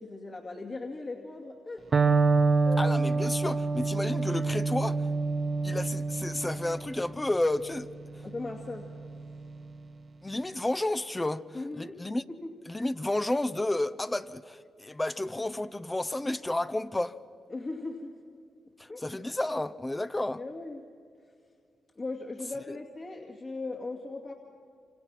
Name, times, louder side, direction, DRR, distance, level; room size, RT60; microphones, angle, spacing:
voice 1, 0.0-1.9 2.6-2.8 8.2-8.9 11.5-12.0 12.3-12.5 17.5-18.2 18.9-19.0 20.3-20.9 22.0-24.3, left 3 dB, 45° left, 2.4 m, -38 dB
Electric guitar, 1.9-9.8, right 3 dB, 50° right, 1.3 m, -28 dB
voice 2, 2.8-5.1 5.6-7.9 8.1-8.2 10.2-12.2 12.7-17.2 18.8-20.4, left 1 dB, 20° left, 0.7 m, -31 dB
27.5 x 26.5 x 6.0 m
supercardioid pair, 50°, 0 cm